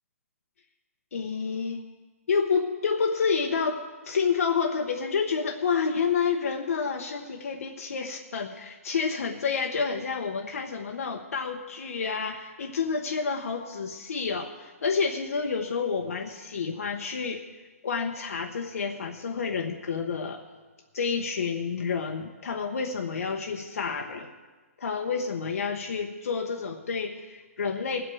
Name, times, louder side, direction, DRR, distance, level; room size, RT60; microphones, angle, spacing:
voice 1, 1.1-1.8 2.3-17.4 17.8-20.4 20.9-24.3 24.8-28.0, left 5 dB, 70° left, 3 dB, 1.0 m, -29 dB
19.5 x 8.2 x 4.8 m, 1.3 s
hypercardioid pair, 180°, 8 cm